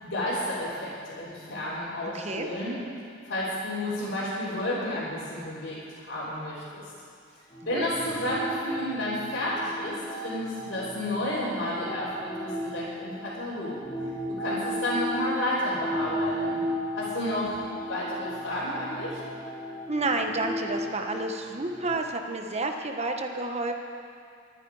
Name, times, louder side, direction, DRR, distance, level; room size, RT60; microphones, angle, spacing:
voice 1, 0.0-2.7 3.3-5.8 6.1-6.8 7.7-13.8 14.4-16.6 17.0-17.6 17.9-19.2, left 1 dB, 70° left, -11 dB, 3.7 m, -31 dB
voice 2, 2.1-2.5 7.6-7.9 19.9-23.7, right 2 dB, 35° right, 4 dB, 1.1 m, -30 dB
sound 1, 7.5-13.3 13.8-21.9, equal, 25° left, 2.1 m, -35 dB
23.5 x 9.9 x 4.9 m, 2.4 s
head